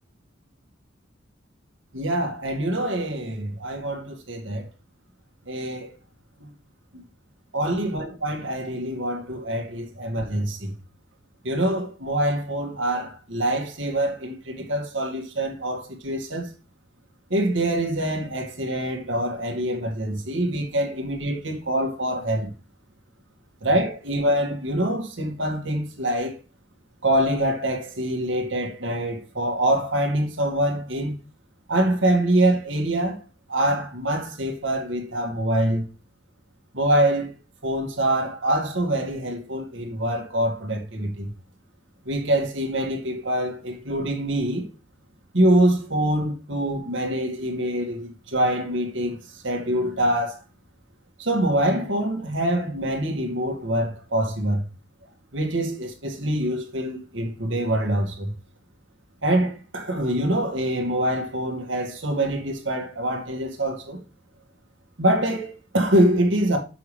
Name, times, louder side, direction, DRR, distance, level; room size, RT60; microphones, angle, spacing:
voice 1, 1.9-4.7 5.5-5.9 6.4-6.5 6.9-7.0 7.5-10.7 11.4-16.5 17.3-22.5 23.6-26.4 27.0-31.1 31.7-33.2 33.5-35.9 36.7-37.3 37.6-41.3 42.1-44.7 45.3-50.4 51.2-54.7 55.3-58.3 59.2-64.0 65.0-66.6, right 1 dB, 70° right, 2.0 m, -25 dB
7.0 x 5.9 x 3.3 m
head